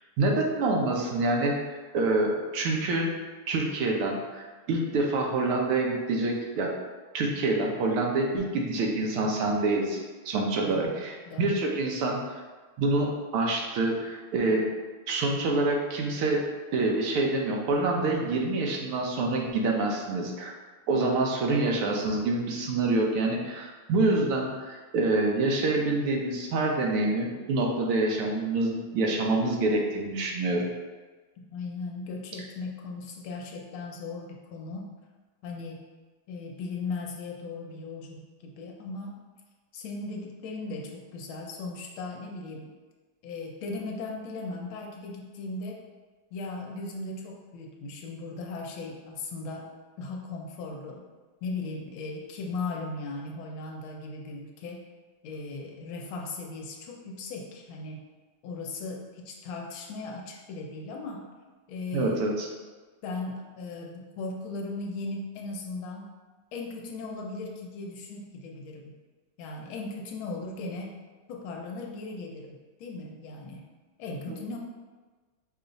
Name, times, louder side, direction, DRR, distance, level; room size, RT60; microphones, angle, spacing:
voice 1, 0.2-3.1 3.5-6.7 7.1-12.2 12.8-14.7 15.1-16.4 16.7-20.5 20.9-30.7 61.9-62.5 74.3-74.4, right 2 dB, 90° right, 0 dB, 1.7 m, -26 dB
voice 2, 10.6-11.6 31.4-34.9 35.4-35.9 36.3-39.2 39.7-42.7 43.2-45.8 46.3-49.7 50.0-51.1 51.4-54.9 55.2-58.1 58.4-61.3 61.7-62.3 63.0-66.1 66.5-69.0 69.4-70.9 71.3-73.7 74.0-74.6, left 3 dB, 75° left, 0 dB, 1.4 m, -37 dB
5.5 x 2.4 x 3.9 m, 1.3 s
omnidirectional pair, 2.3 m